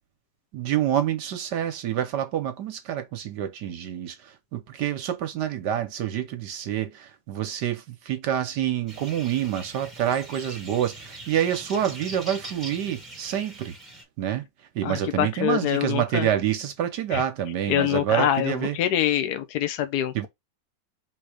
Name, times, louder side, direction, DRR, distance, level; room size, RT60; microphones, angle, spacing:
voice 1, 0.5-13.7 14.2-14.4 14.7-18.8 20.1-20.3, right 10 dB, 70° right, 1.3 m, -27 dB
sound 1, 8.9-14.0, right 2 dB, ahead, 1.6 m, -42 dB
voice 2, 14.8-16.3 17.1-17.2 17.7-20.3, left 11 dB, 70° left, 1.1 m, -25 dB
3.9 x 2.8 x 4.8 m
omnidirectional pair, 2.0 m